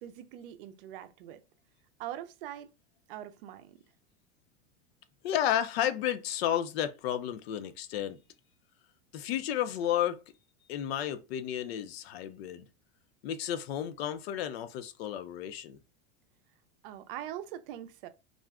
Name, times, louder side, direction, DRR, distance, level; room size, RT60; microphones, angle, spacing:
voice 1, 0.0-1.4 2.0-2.7 3.1-3.8 16.8-18.1, right 11 dB, 60° right, 0.5 m, -42 dB
voice 2, 5.2-8.2 9.1-10.2 10.7-12.6 13.2-15.8, left 11 dB, 70° left, 0.5 m, -32 dB
2.4 x 2.1 x 3.5 m
supercardioid pair, 145°, 31 cm